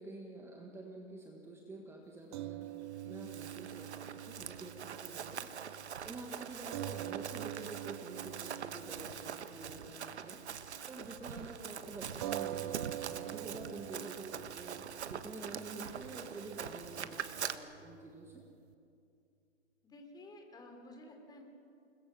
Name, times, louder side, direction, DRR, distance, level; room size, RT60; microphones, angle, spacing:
voice 1, 0.0-2.7 3.0-10.4 10.9-14.8 15.1-18.4, right 2 dB, 5° right, 2 dB, 1.6 m, -48 dB
sound 1, 2.3-10.8 11.1-11.3 12.2-18.7, right 14 dB, 25° right, 0.6 m, -46 dB
Run, 3.0-17.5, right 8 dB, 70° right, 1.6 m, -44 dB
voice 2, 7.2-7.6 19.8-21.4, left 1 dB, 10° left, 3 dB, 3.6 m, -53 dB
29.0 x 20.5 x 7.6 m, 2.5 s
hypercardioid pair, 145°, 34 cm